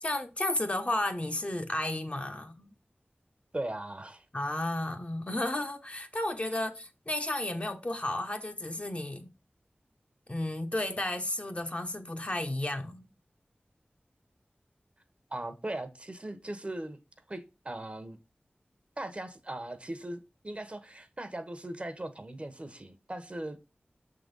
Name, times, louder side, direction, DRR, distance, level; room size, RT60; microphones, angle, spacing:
voice 1, 0.0-2.7 4.3-9.3 10.3-13.1, left 1 dB, 35° left, 1.0 m, -33 dB
voice 2, 3.5-4.3 15.3-17.0 17.3-18.2 19.0-23.6, right 1 dB, 35° right, 1.0 m, -39 dB
6.8 x 3.8 x 5.3 m
wide cardioid pair, 70°, 4 cm